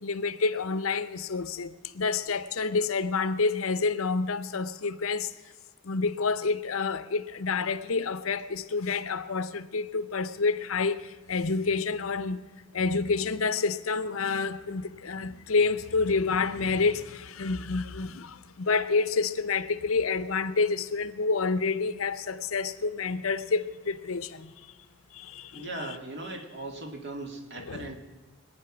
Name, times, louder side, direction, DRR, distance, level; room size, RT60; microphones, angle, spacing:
voice 1, 0.0-5.3 5.8-12.4 12.7-24.8 25.1-25.7 27.7-28.0, left 4 dB, 75° left, 0.7 m, -28 dB
voice 2, 25.5-28.0, right 2 dB, 55° right, 2.0 m, -38 dB
22.5 x 9.4 x 6.0 m
head